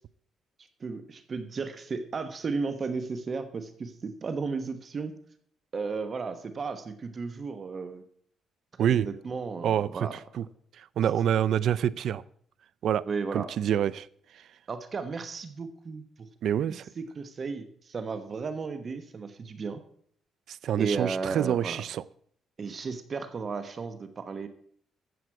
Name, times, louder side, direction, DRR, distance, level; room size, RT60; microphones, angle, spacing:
voice 1, 0.8-5.2 5.7-8.0 8.8-10.2 13.1-13.5 14.7-16.0 16.7-19.8 20.8-21.8 22.6-24.5, right 4 dB, 40° right, 1.2 m, -34 dB
voice 2, 9.6-10.1 10.4-10.5 10.8-12.2 12.8-13.0 13.3-14.1 16.4-16.9 20.5-22.0, right 9 dB, 70° right, 0.5 m, -26 dB
14.0 x 7.8 x 4.8 m
cardioid pair, 90°, 0 cm